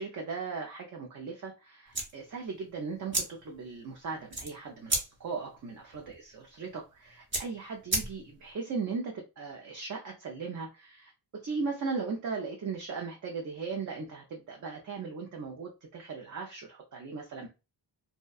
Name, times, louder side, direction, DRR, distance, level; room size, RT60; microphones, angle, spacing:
voice 1, 0.0-11.1 11.4-17.5, right 4 dB, 40° right, 1 dB, 0.5 m, -38 dB
sound 1, 1.9-8.5, right 2 dB, 25° right, 0.8 m, -36 dB
2.6 x 2.1 x 2.3 m, 0.28 s
wide cardioid pair, 110°, 49 cm